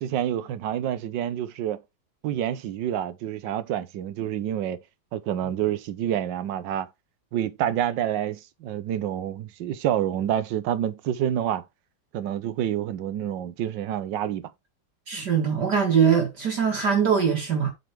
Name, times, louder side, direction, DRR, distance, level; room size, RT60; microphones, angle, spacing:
voice 1, 0.0-1.8 2.2-4.8 5.1-6.9 7.3-11.6 12.1-14.4, right 10 dB, 65° right, 1.3 m, -28 dB
voice 2, 15.1-17.7, right 7 dB, 50° right, 2.1 m, -22 dB
8.1 x 4.0 x 4.6 m
omnidirectional pair, 2.4 m